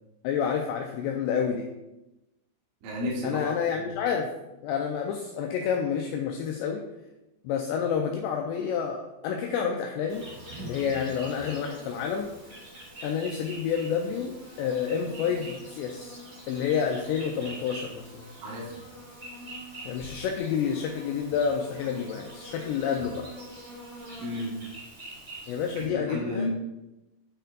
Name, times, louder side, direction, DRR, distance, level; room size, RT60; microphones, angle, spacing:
voice 1, 0.2-1.7 3.2-4.3 4.6-6.8 7.4-10.2 10.6-12.3 13.0-14.3 14.6-18.3 19.9-23.3 25.5-26.5, left 7 dB, 85° left, 2 dB, 2.5 m, -29 dB
voice 2, 2.8-3.9 18.4-18.7 24.2-24.5 25.8-26.5, left 1 dB, 75° right, -5 dB, 4.2 m, -33 dB
Insect, 10.1-25.8, right 1 dB, 35° right, 1.8 m, -44 dB
9.0 x 4.3 x 3.9 m, 0.97 s
omnidirectional pair, 5.6 m